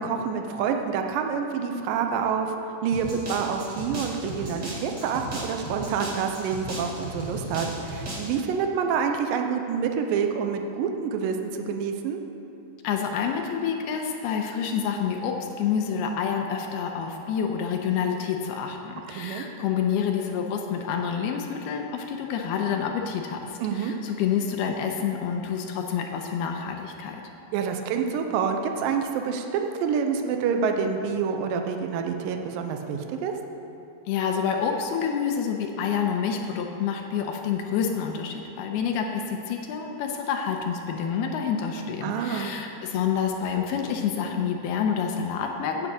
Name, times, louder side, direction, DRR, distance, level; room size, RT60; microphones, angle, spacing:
voice 1, 0.0-2.5 2.8-12.2 19.1-19.5 23.6-24.0 27.5-33.3 42.0-42.6, right 6 dB, 75° right, 5 dB, 2.2 m, -27 dB
sound 1, 2.9-8.4, right 1 dB, 45° right, 1.3 m, -36 dB
voice 2, 12.8-23.4 23.7-27.2 34.1-45.9, left 7 dB, 80° left, 2 dB, 2.6 m, -28 dB
9.6 x 7.6 x 8.3 m, 2.8 s
omnidirectional pair, 4.7 m